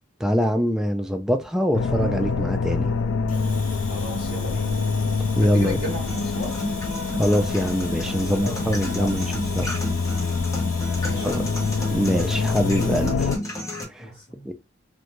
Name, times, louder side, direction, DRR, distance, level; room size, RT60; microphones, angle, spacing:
voice 1, 0.2-2.9 5.4-5.8 7.2-9.3 9.6-9.7 11.2-11.4 11.9-13.3 13.9-14.1 14.5-14.6, equal, 5° right, 0.3 m, -23 dB
sound 1, 1.7-13.4, left 4 dB, 80° left, 0.4 m, -26 dB
Domestic sounds home sounds, 3.3-13.2, left 2 dB, 40° left, 0.9 m, -41 dB
voice 2, 3.9-4.8 5.4-6.0 6.3-6.5 8.3-8.5 8.9-9.1 11.0-11.3 14.0-14.5, left 1 dB, 65° left, 1.3 m, -33 dB
sound 2, 5.8-13.8, left 1 dB, 15° left, 0.7 m, -32 dB
2.5 x 2.3 x 2.9 m
head